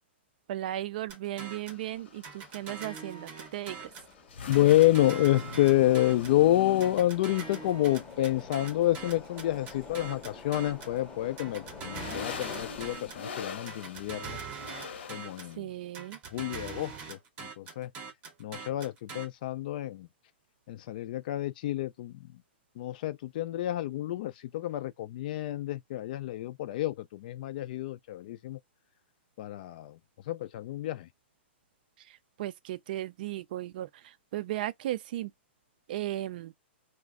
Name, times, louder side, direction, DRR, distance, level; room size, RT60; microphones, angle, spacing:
voice 1, 0.5-3.9 15.6-16.2 32.0-35.3 35.9-36.5, right 14 dB, 50° right, 0.3 m, -36 dB
sound 1, 1.1-1.8 2.2-4.1 4.5-6.4 6.8-11.0 11.4-13.3 13.7-15.6 15.9-19.3, right 5 dB, 20° right, 0.7 m, -43 dB
sound 2, 1.4-15.5, left 6 dB, 70° left, 0.8 m, -44 dB
sound 3, 1.7-13.2, left 4 dB, 15° left, 0.7 m, -50 dB
voice 2, 4.5-14.4 15.1-15.7 16.3-17.9 18.4-20.1 20.7-22.4 22.8-28.6 29.4-30.0 30.3-31.1, left 14 dB, 45° left, 0.4 m, -28 dB
2.4 x 2.1 x 3.5 m
hypercardioid pair, 155°, 6 cm